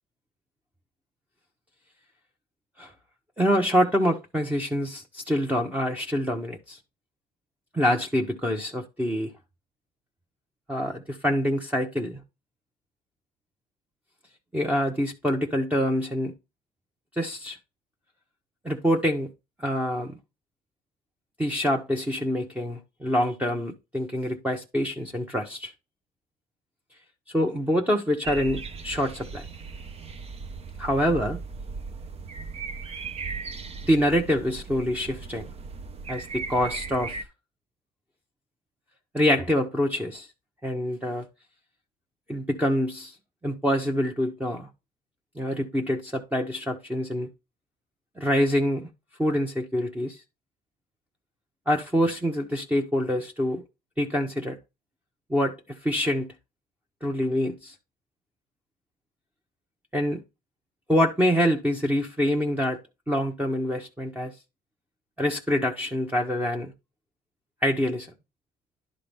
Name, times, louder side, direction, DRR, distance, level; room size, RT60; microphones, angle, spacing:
voice 1, 3.4-6.8 7.7-9.3 10.7-12.2 14.5-16.3 17.2-17.6 18.6-19.3 19.6-20.2 21.4-25.7 27.3-29.5 30.8-31.4 33.9-35.5 36.1-37.2 39.1-40.3 40.6-41.3 42.3-43.1 43.4-44.7 45.4-47.3 48.2-48.9 49.2-50.2 51.7-53.6 54.0-54.6 55.3-55.5 55.8-56.3 57.0-57.7 59.9-60.2 60.9-62.8 63.1-64.3 65.2-66.7 67.6-68.1, equal, 10° right, 1.1 m, -25 dB
sound 1, 28.2-37.2, right 4 dB, 35° right, 0.9 m, -37 dB
11.0 x 3.8 x 3.5 m
cardioid pair, 110°, 17 cm